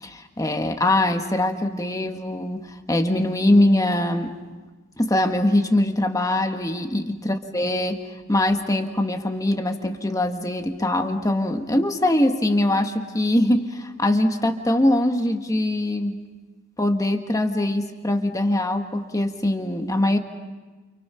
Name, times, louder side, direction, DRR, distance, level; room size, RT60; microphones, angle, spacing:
voice 1, 0.0-4.3 5.0-8.0 8.3-16.2 16.8-20.2, left 1 dB, 20° left, 6 dB, 1.5 m, -22 dB
29.0 x 29.0 x 5.7 m, 1.3 s
head